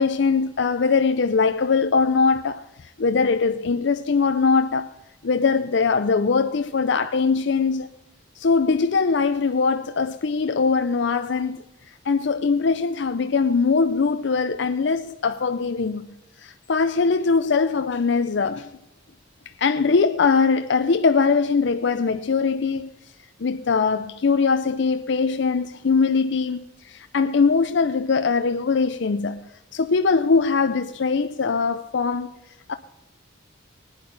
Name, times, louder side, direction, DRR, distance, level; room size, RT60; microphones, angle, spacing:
voice 1, 0.0-2.6 3.0-4.9 5.2-7.9 8.4-11.6 12.1-16.1 16.4-18.7 19.6-22.9 23.4-32.3 32.7-32.8, left 4 dB, 60° left, 0.5 m, -21 dB
19.0 x 9.7 x 4.0 m
head